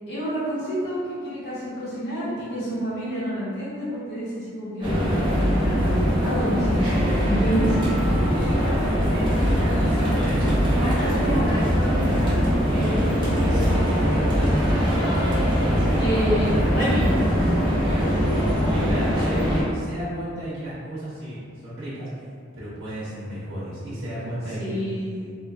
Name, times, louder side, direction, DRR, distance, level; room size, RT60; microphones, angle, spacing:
voice 1, 0.1-7.8 16.0-17.1 18.8-19.0 24.6-25.3, equal, 55° left, -10 dB, 0.9 m, -28 dB
sound 1, 4.8-19.6, equal, 25° right, 0.6 m, -21 dB
voice 2, 9.8-12.2 12.6-16.9 17.9-18.2 18.7-22.1 22.5-24.8, right 1 dB, 65° right, -11 dB, 0.7 m, -33 dB
3.0 x 2.2 x 2.4 m, 2.2 s
head